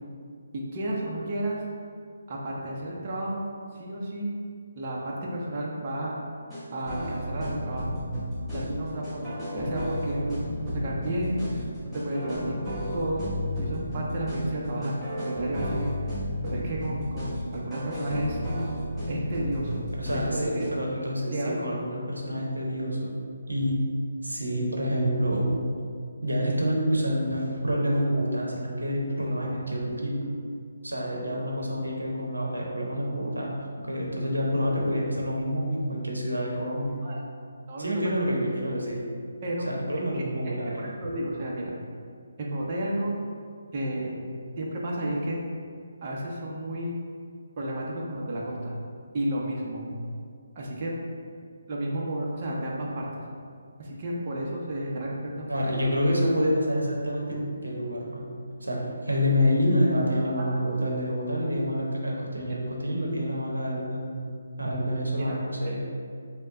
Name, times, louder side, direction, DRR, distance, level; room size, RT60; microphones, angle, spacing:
voice 1, 0.5-1.6 2.3-3.5 3.7-4.3 4.8-6.2 6.7-8.0 8.5-11.7 11.9-13.3 13.6-14.9 15.2-16.2 16.4-18.4 19.0-19.8 20.1-20.7 21.3-21.7 37.0-37.2 37.7-38.0 39.4-39.7 39.9-40.2 40.8-41.7 42.4-43.2 43.7-44.2 44.6-45.4 46.0-46.9 47.6-48.7 49.1-49.8 50.5-50.9 51.7-53.3 53.8-55.8, right 1 dB, 35° right, -4 dB, 0.7 m, -32 dB
sound 1, 6.5-20.7, equal, ahead, 1.1 m, -33 dB
voice 2, 20.0-23.2 23.5-23.8 24.2-25.5 26.2-30.2 30.8-33.5 33.9-37.0 37.8-39.0 39.6-40.9 55.5-58.3 58.6-64.3 64.6-65.8, equal, 85° right, -2 dB, 0.9 m, -27 dB
5.3 x 2.2 x 3.7 m, 2.2 s
figure-of-eight pair, 145°, 0 cm